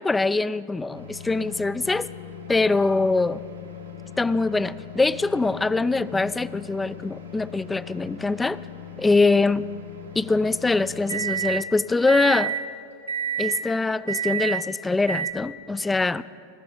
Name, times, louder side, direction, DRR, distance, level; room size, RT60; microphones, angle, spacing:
voice 1, 0.0-2.1 2.5-3.4 4.2-8.6 9.0-9.7 10.2-12.5 13.4-16.2, left 3 dB, 10° left, 17 dB, 0.3 m, -23 dB
sound 1, 0.9-11.6 12.1-12.6 13.1-13.6 14.1-14.6 15.1-15.3, right 5 dB, 80° right, 1.6 m, -34 dB
18.5 x 6.9 x 9.1 m, 2.6 s
figure-of-eight pair, 90°, 0 cm